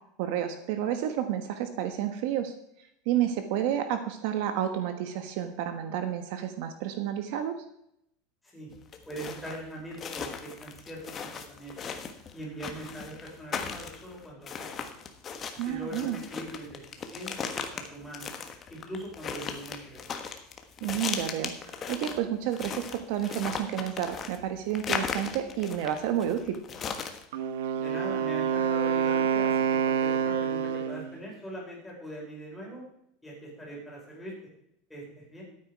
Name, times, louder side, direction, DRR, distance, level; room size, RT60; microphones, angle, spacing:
voice 1, 0.2-2.5 3.0-7.6 15.6-16.2 20.8-26.6, right 10 dB, 60° right, 8 dB, 1.3 m, -30 dB
sound 1, 8.7-27.2, left 6 dB, 25° left, 1.3 m, -37 dB
voice 2, 9.0-11.8 12.3-14.9 15.6-18.3 18.7-20.0 27.7-32.8 33.2-34.3 34.9-35.4, right 1 dB, 5° left, -4 dB, 4.9 m, -41 dB
Wind instrument woodwind instrument, 27.3-31.2, right 8 dB, 85° right, 1.1 m, -27 dB
13.5 x 8.9 x 4.8 m, 0.76 s
supercardioid pair, 155°, 0 cm